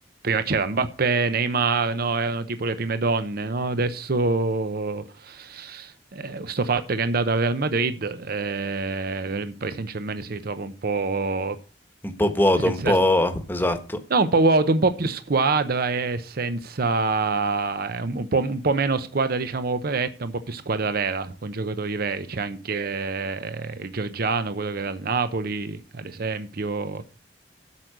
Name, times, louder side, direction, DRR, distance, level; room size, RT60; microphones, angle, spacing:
voice 1, 0.2-11.6 12.6-12.9 14.1-27.0, right 3 dB, 55° right, 0.7 m, -25 dB
voice 2, 12.0-14.0, left 1 dB, 10° left, 1.2 m, -21 dB
8.3 x 6.1 x 8.0 m
head